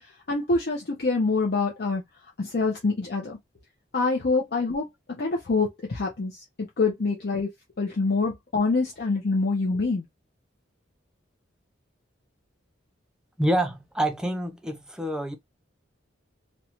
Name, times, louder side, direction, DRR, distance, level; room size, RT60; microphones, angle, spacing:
voice 1, 0.3-2.0 2.4-3.4 3.9-7.5 7.8-10.0, left 3 dB, 50° left, 0.5 m, -26 dB
voice 2, 13.4-15.4, right 1 dB, 5° right, 0.3 m, -27 dB
2.6 x 2.1 x 2.9 m
head